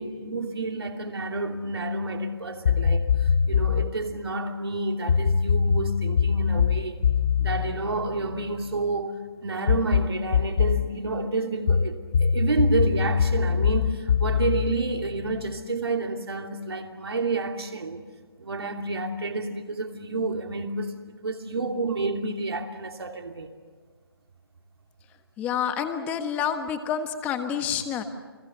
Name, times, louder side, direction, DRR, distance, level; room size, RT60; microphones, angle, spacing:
voice 1, 0.0-7.1 7.4-18.0 18.4-23.5, right 3 dB, 80° right, 2.9 m, -30 dB
sound 1, 2.6-3.9 5.1-8.8 9.7-10.9 11.7-15.6, left 6 dB, 45° left, 0.8 m, -23 dB
voice 2, 25.4-28.0, left 8 dB, 10° left, 1.3 m, -28 dB
30.0 x 21.0 x 6.8 m
hypercardioid pair, 160°, 13 cm